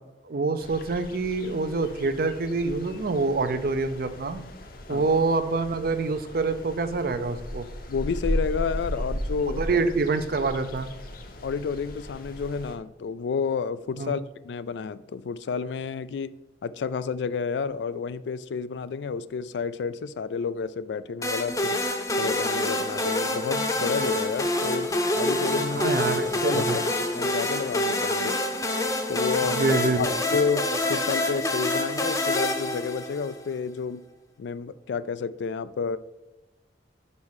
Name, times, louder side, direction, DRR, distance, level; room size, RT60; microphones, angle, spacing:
voice 1, 0.3-4.4 4.9-7.7 9.6-10.9 14.0-14.2 25.7-26.8 29.5-30.1, right 3 dB, 55° right, 11 dB, 0.5 m, -26 dB
sound 1, 0.6-12.8, equal, 55° left, 0.8 m, -36 dB
voice 2, 7.9-9.6 11.4-21.8 22.2-24.9 25.2-26.9 27.1-28.3 29.1-29.6 30.0-34.0 34.4-36.0, left 5 dB, 80° left, 15 dB, 0.4 m, -30 dB
sound 2, 21.2-33.4, left 1 dB, 20° left, 0.7 m, -27 dB
5.5 x 5.3 x 4.7 m, 1.1 s
head